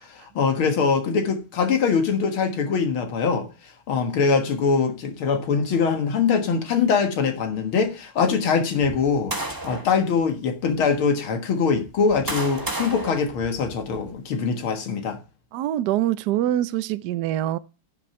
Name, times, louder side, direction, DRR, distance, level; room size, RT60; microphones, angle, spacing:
voice 1, 0.1-3.5 3.9-9.3 9.6-15.2, left 5 dB, 80° left, 2.4 m, -23 dB
sound 1, 8.8-10.0 10.7-10.9 11.8-14.1, right 1 dB, 15° right, 1.1 m, -32 dB
voice 2, 15.5-17.6, right 13 dB, 70° right, 1.0 m, -24 dB
10.0 x 6.2 x 5.7 m
omnidirectional pair, 2.3 m